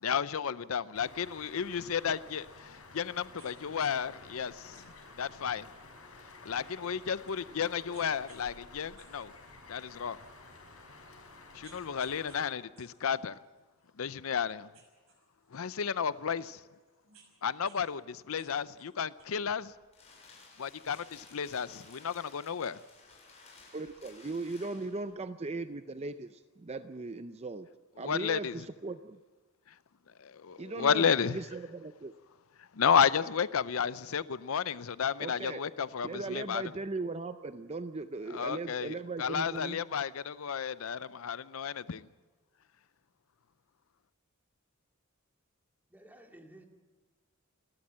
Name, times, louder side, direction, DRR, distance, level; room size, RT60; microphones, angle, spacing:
voice 1, 0.0-4.9 5.2-5.7 6.4-9.3 9.7-10.2 11.5-13.3 14.0-14.7 15.5-16.6 17.4-19.7 20.6-22.8 28.0-28.6 30.2-31.4 32.6-36.7 38.3-42.1, left 7 dB, 70° left, 0.6 m, -32 dB
sound 1, 0.9-12.5, left 3 dB, 85° left, 5.1 m, -52 dB
sound 2, 3.4-3.5 3.8-3.9 4.7-7.4 7.9-8.5 8.8-10.2 10.7-10.8 11.3-12.4 12.8-14.3 14.7-16.1 16.7-17.8 18.1-19.2, right 6 dB, 70° right, 6.2 m, -62 dB
sound 3, 19.5-25.1, left 4 dB, 30° left, 7.3 m, -56 dB
voice 2, 23.7-27.7 28.0-29.2 30.6-32.1 35.2-35.6 36.0-39.8, right 3 dB, 30° right, 0.6 m, -38 dB
voice 3, 45.9-46.7, right 1 dB, 10° right, 2.3 m, -54 dB
29.5 x 13.0 x 7.5 m
head